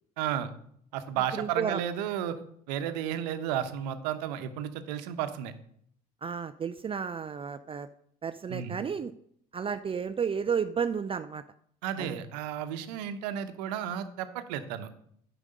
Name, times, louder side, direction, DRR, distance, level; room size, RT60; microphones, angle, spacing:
voice 1, 0.2-0.5 0.9-2.4 2.7-5.5 8.5-8.8 11.8-14.9, right 10 dB, 75° right, 10 dB, 0.9 m, -33 dB
voice 2, 1.3-1.8 6.2-7.9 8.2-9.1 9.5-11.4 12.0-12.1, right 6 dB, 25° right, 11 dB, 0.5 m, -32 dB
9.8 x 5.2 x 6.4 m, 0.66 s
hypercardioid pair, 70°, 21 cm